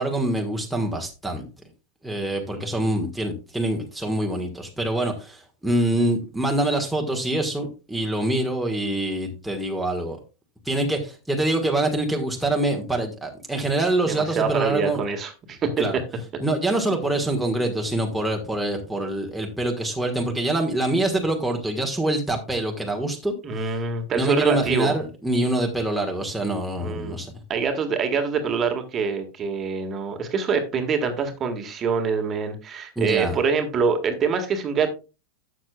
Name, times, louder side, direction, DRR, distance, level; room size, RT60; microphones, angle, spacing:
voice 1, 0.0-1.5 2.0-10.2 10.6-15.0 15.8-16.0 16.4-23.3 24.1-27.3 33.0-33.4, right 1 dB, ahead, 0 dB, 1.5 m, -25 dB
voice 2, 2.5-2.9 14.0-15.8 23.4-25.0 26.8-27.2 27.5-34.9, right 5 dB, 25° right, 6 dB, 1.6 m, -25 dB
12.0 x 7.6 x 2.3 m, 0.29 s
figure-of-eight pair, 90°, 0 cm